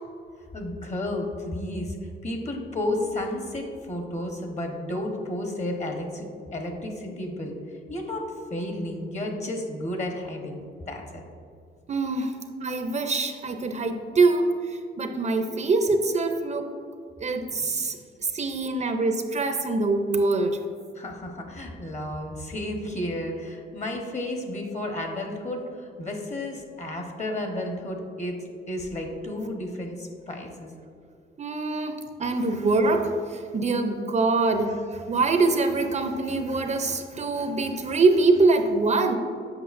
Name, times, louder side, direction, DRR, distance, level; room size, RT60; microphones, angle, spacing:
voice 1, 0.5-2.0 2.2-7.5 7.9-11.2 12.2-12.3 18.8-18.9 20.9-28.4 28.7-30.7 31.7-31.9, left 1 dB, 35° left, 3 dB, 1.1 m, -32 dB
voice 2, 11.9-16.7 17.2-20.6 31.4-39.1, right 3 dB, 35° right, 6 dB, 0.5 m, -24 dB
7.9 x 5.6 x 2.5 m, 2.4 s
cardioid pair, 90°, 20 cm